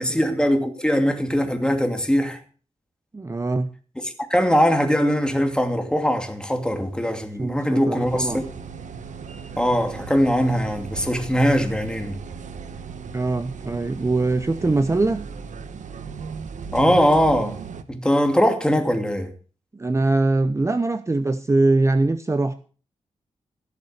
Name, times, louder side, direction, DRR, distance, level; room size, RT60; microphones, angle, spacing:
voice 1, 0.0-2.4 4.0-8.4 9.6-12.2 16.7-17.6 17.9-19.3, equal, 5° left, 2.5 m, -21 dB
voice 2, 3.1-3.7 7.4-8.5 13.1-15.2 19.7-22.5, right 2 dB, 25° right, 0.8 m, -22 dB
sound 1, 8.0-17.8, right 6 dB, 80° right, 1.2 m, -36 dB
16.5 x 6.9 x 6.6 m
cardioid pair, 85°, 12 cm